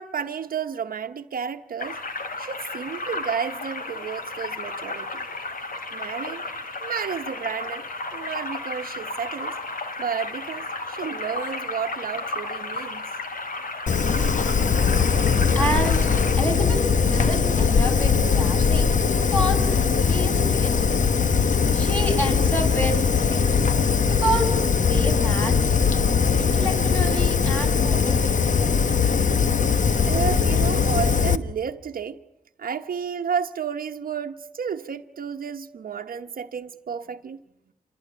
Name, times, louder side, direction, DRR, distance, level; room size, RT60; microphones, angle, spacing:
voice 1, 0.0-2.0 2.4-5.2 5.9-6.4 6.8-7.8 8.1-9.6 10.0-13.1 30.0-32.2 32.6-37.4, right 7 dB, 85° right, 1.0 m, -31 dB
sound 1, 1.8-16.4, left 2 dB, 75° left, 3.2 m, -33 dB
Fire, 13.9-31.4, left 5 dB, 60° left, 1.2 m, -20 dB
voice 2, 15.5-18.9 19.2-19.7 20.1-20.9 21.7-23.6 24.1-24.6 24.9-25.8 26.4-28.3, right 1 dB, 10° left, 7.2 m, -29 dB
28.0 x 21.0 x 9.9 m
wide cardioid pair, 100°, 14 cm